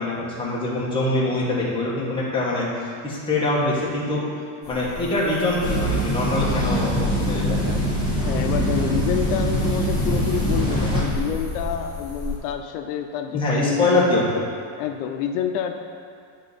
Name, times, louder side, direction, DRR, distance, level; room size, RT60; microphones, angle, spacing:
voice 1, 0.0-2.7 3.0-4.3 4.7-7.6 13.3-14.4, left 2 dB, 10° left, -7 dB, 1.2 m, -23 dB
sound 1, 4.6-12.4, left 3 dB, 30° left, 1.3 m, -35 dB
sound 2, 5.6-11.0, equal, 10° right, 1.4 m, -23 dB
voice 2, 8.2-14.0 14.8-15.8, left 8 dB, 80° left, 5 dB, 0.6 m, -28 dB
9.2 x 3.6 x 4.0 m, 2.3 s
cardioid pair, 160°, 46 cm